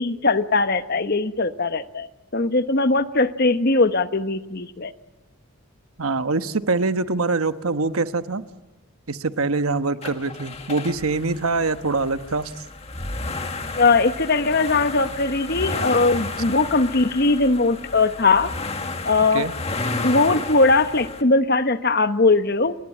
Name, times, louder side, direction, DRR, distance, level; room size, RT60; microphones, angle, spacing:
voice 1, 0.0-2.1 2.3-4.9 13.8-18.5 19.0-19.5 20.0-22.8, left 3 dB, 45° left, 11 dB, 1.1 m, -20 dB
voice 2, 6.0-8.4 9.1-12.5 19.3-19.5, right 3 dB, 85° right, 10 dB, 1.2 m, -24 dB
sound 1, 10.0-21.2, left 3 dB, 30° left, 1.8 m, -32 dB
29.5 x 21.5 x 8.5 m, 1.0 s
head